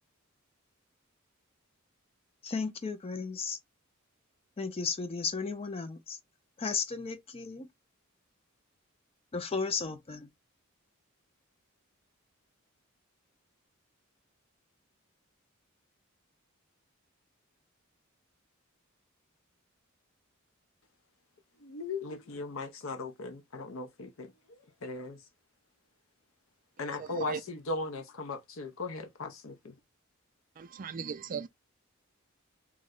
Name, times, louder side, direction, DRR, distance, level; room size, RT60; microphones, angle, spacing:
voice 1, 2.4-3.6 4.6-6.2 6.6-7.7 9.3-10.3, left 5 dB, 30° left, 0.5 m, -34 dB
voice 2, 21.6-25.2 26.8-29.8, left 3 dB, 70° left, 0.7 m, -38 dB
voice 3, 26.8-27.4 30.6-31.5, right 6 dB, 40° right, 0.3 m, -38 dB
3.1 x 2.1 x 3.6 m
head